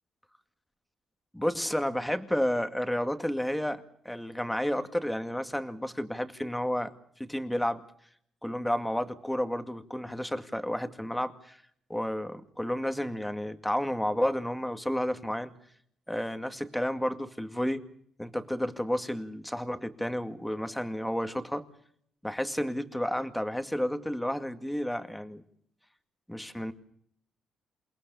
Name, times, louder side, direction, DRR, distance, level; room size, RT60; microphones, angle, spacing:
voice 1, 1.3-6.9 7.2-7.8 8.4-11.6 11.9-15.5 16.1-17.8 18.2-21.7 22.2-25.4 26.3-26.7, equal, 5° left, 8 dB, 2.1 m, -31 dB
28.5 x 18.0 x 7.0 m, 0.67 s
cardioid pair, 90°, 0 cm